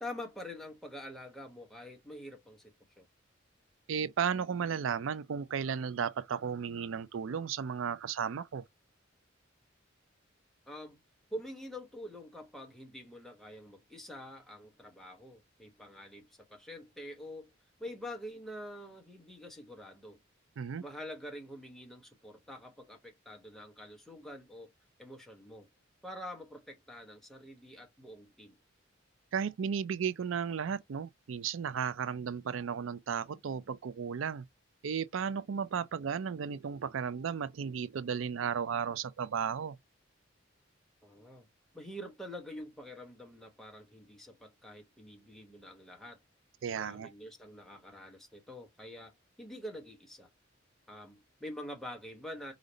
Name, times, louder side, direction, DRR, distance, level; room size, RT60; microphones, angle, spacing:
voice 1, 0.0-3.0 10.7-11.0 11.3-17.5 17.8-20.2 20.8-24.7 25.0-25.7 26.0-28.6 41.0-41.5 41.7-46.2 46.7-50.3 50.9-52.5, left 1 dB, ahead, 1.0 m, -46 dB
voice 2, 3.9-8.6 20.6-20.8 29.3-34.4 34.8-39.8 46.6-47.1, right 7 dB, 80° right, 0.4 m, -34 dB
5.1 x 2.0 x 3.9 m
head